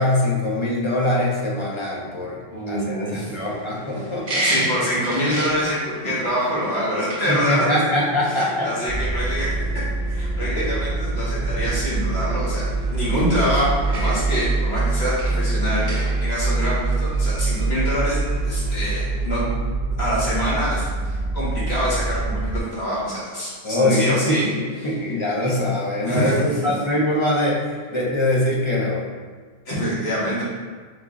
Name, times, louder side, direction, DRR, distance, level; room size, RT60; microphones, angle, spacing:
voice 1, 0.0-2.4 2.7-4.4 7.3-8.7 10.4-10.7 13.1-13.4 23.6-29.0, left 1 dB, 30° left, -4 dB, 0.7 m, -23 dB
voice 2, 2.5-3.3 4.4-7.9 8.2-9.7 10.1-19.4 20.0-24.5 24.8-24.9 26.1-26.7 29.7-30.4, equal, 70° left, -8 dB, 1.8 m, -25 dB
sound 1, 3.3-19.3, right 1 dB, 40° right, 0.7 m, -34 dB
sound 2, 8.9-22.6, right 3 dB, 70° right, 0.8 m, -24 dB
3.7 x 3.5 x 3.7 m, 1.5 s
omnidirectional pair, 1.1 m